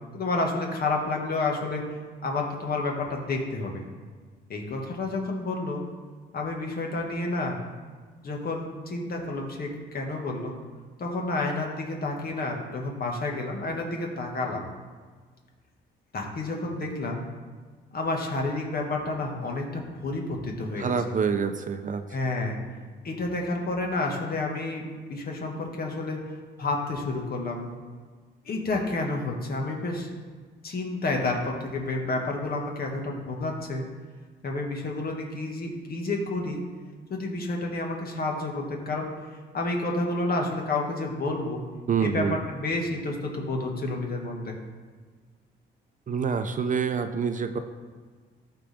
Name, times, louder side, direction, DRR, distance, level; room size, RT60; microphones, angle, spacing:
voice 1, 0.1-1.9 2.2-3.8 4.5-5.8 6.3-7.6 8.2-10.5 11.0-14.6 16.1-17.2 17.9-20.9 22.1-22.6 23.0-27.7 28.5-30.1 30.6-33.9 34.4-36.6 37.1-41.6 42.0-44.6, left 2 dB, 50° left, 0 dB, 2.0 m, -30 dB
voice 2, 20.8-22.0 41.9-42.4 46.1-47.6, right 6 dB, 40° right, 8 dB, 0.7 m, -26 dB
14.0 x 4.9 x 3.7 m, 1.5 s
cardioid pair, 90°, 20 cm